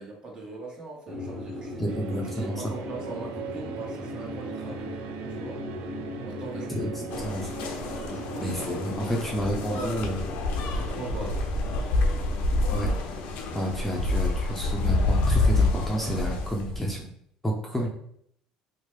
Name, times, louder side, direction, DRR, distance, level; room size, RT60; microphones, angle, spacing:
voice 1, 0.0-1.8 2.3-4.9 5.3-5.6 6.2-6.9 8.1-8.8 9.0-10.1 10.7-11.5 17.7-17.9, right 3 dB, 40° right, -1 dB, 1.2 m, -40 dB
sound 1, 1.1-15.9, left 1 dB, 15° right, 1.0 m, -39 dB
voice 2, 1.8-2.6 6.7-7.5 8.4-10.2 12.7-12.9 13.5-17.1 17.4-17.9, equal, 5° left, -1 dB, 0.6 m, -30 dB
sound 2, 1.9-13.2, right 10 dB, 75° right, 0.3 m, -43 dB
sound 3, 7.1-17.0, left 2 dB, 70° left, 0.5 m, -27 dB
2.9 x 2.1 x 3.2 m, 0.68 s
supercardioid pair, 85°, 2 cm